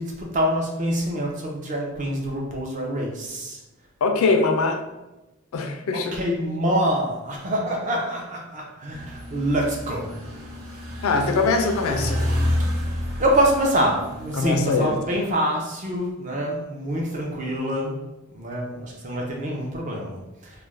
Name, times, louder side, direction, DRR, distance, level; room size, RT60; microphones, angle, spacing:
voice 1, 0.0-3.6 5.9-10.1 13.2-18.0 18.3-20.5, equal, 35° right, -1 dB, 0.5 m, -25 dB
voice 2, 4.0-4.8 5.5-6.2 11.0-12.2 14.3-14.9, left 3 dB, 85° left, 4 dB, 0.4 m, -22 dB
sound 1, 8.9-15.2, left 1 dB, 85° right, 0.8 m, -29 dB
2.3 x 2.1 x 3.1 m, 1.0 s
head